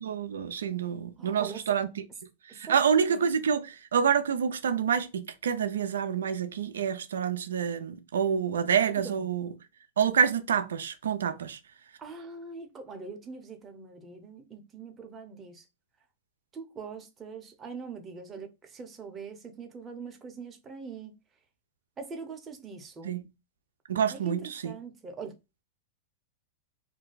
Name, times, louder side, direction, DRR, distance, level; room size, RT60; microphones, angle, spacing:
voice 1, 0.0-1.9 2.5-9.5 10.0-11.6 23.0-23.2 23.9-24.7, right 7 dB, 90° right, 0.4 m, -27 dB
voice 2, 1.2-1.6 2.5-2.8 3.1-3.4 9.0-9.3 12.0-15.6 16.5-21.1 22.0-23.3 24.1-25.4, right 5 dB, 20° right, 0.7 m, -43 dB
2.6 x 2.1 x 3.9 m
hypercardioid pair, 125°, 0 cm